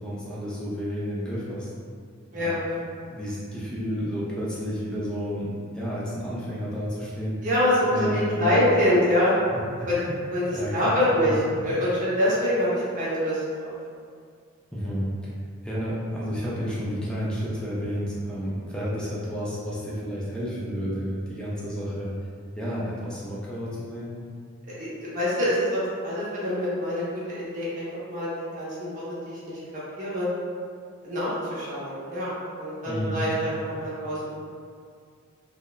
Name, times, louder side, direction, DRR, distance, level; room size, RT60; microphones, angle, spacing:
voice 1, 0.0-1.7 2.3-2.7 3.1-7.4 7.9-8.8 9.8-10.2 10.5-10.9 11.2-11.7 14.7-15.3 15.6-22.1 22.5-24.1 32.8-33.3, equal, 5° left, -8 dB, 0.4 m, -31 dB
voice 2, 2.3-2.9 7.4-9.3 9.9-10.0 10.3-11.3 11.6-13.8 24.7-28.3 28.6-28.8 29.3-29.6 30.0-30.2 31.0-32.3 32.6-34.3, left 1 dB, 40° right, -9 dB, 0.7 m, -25 dB
2.9 x 2.1 x 2.3 m, 2.2 s
head